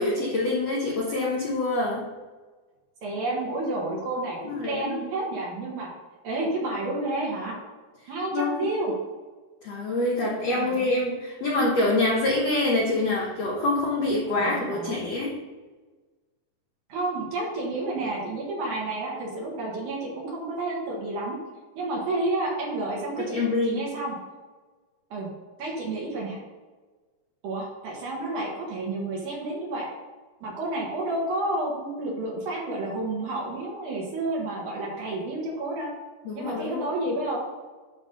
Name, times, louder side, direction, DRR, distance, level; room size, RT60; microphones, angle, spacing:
voice 1, 0.0-2.1 4.4-5.1 8.0-8.7 9.6-15.4 23.2-23.8 36.2-36.9, left 2 dB, 80° left, -3 dB, 1.4 m, -26 dB
voice 2, 3.0-5.9 6.2-7.6 8.1-8.9 10.5-10.9 14.4-15.1 16.9-21.4 21.8-24.2 25.1-25.3 25.6-26.4 27.4-29.9 30.4-35.9 36.3-37.4, right 2 dB, 55° right, -3 dB, 2.7 m, -30 dB
11.0 x 3.9 x 5.2 m, 1.3 s
omnidirectional pair, 4.8 m